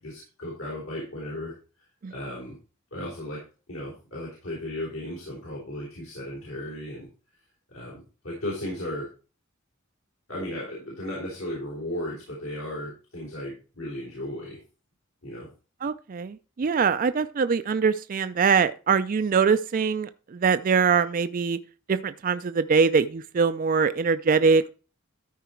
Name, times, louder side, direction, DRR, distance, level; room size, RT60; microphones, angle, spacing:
voice 1, 0.0-1.5 2.1-2.6 2.9-3.4 3.7-7.1 7.7-9.1 10.3-14.6 15.2-15.5, left 1 dB, 80° left, -5 dB, 4.0 m, -35 dB
voice 2, 15.8-21.6 21.9-24.7, right 5 dB, 40° right, 12 dB, 0.4 m, -23 dB
13.0 x 4.7 x 4.4 m, 0.35 s
head